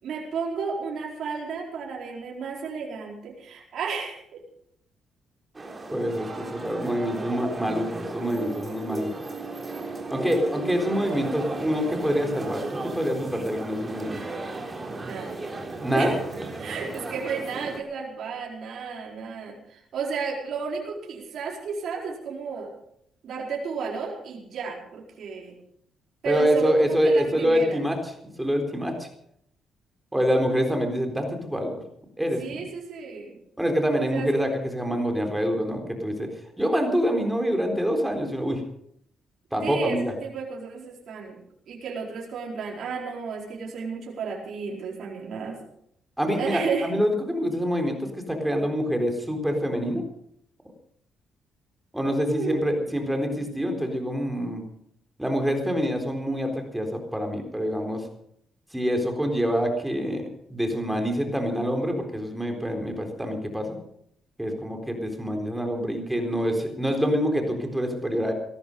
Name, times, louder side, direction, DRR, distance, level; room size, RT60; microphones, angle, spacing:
voice 1, 0.0-4.4 15.0-15.3 15.9-16.2 16.6-22.7 23.2-25.5 26.2-27.8 32.4-33.4 34.0-34.3 39.6-41.4 41.7-45.6 46.3-46.9 52.2-52.7 66.9-67.2, right 5 dB, 65° right, -2 dB, 4.6 m, -33 dB
sound 1, 5.5-17.8, right 2 dB, 25° right, 3.6 m, -35 dB
voice 2, 5.9-9.1 10.1-14.2 15.8-16.2 26.3-28.0 28.4-29.1 30.1-31.8 32.2-32.6 33.6-36.3 36.6-38.6 39.5-40.1 46.2-50.0 51.9-54.6 55.2-58.1 58.7-63.8 64.4-68.3, equal, 5° right, 4 dB, 4.0 m, -26 dB
18.0 x 13.5 x 5.4 m, 0.71 s
cardioid pair, 90°, 0 cm